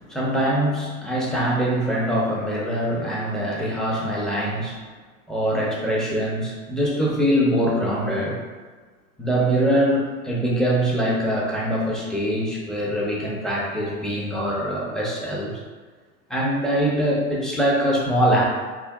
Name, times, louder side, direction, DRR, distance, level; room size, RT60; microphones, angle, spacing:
voice 1, 0.1-4.8 5.3-8.4 9.2-15.5 16.3-18.5, equal, ahead, -4 dB, 0.6 m, -23 dB
3.6 x 2.2 x 3.4 m, 1.4 s
hypercardioid pair, 120°, 40 cm